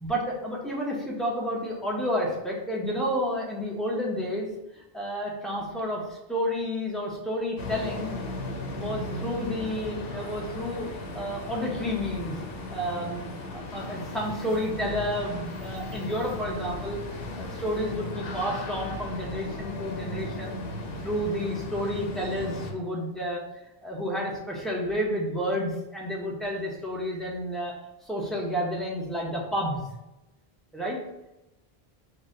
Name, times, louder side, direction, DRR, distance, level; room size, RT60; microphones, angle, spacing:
voice 1, 0.0-8.1 8.7-12.4 12.7-13.3 13.5-17.0 17.4-20.6 21.0-23.4 23.8-27.7 28.0-29.9 30.7-31.0, equal, ahead, -3 dB, 0.6 m, -30 dB
sound 1, 7.6-22.7, left 2 dB, 70° left, 0.8 m, -36 dB
3.9 x 2.2 x 3.7 m, 0.94 s
omnidirectional pair, 1.0 m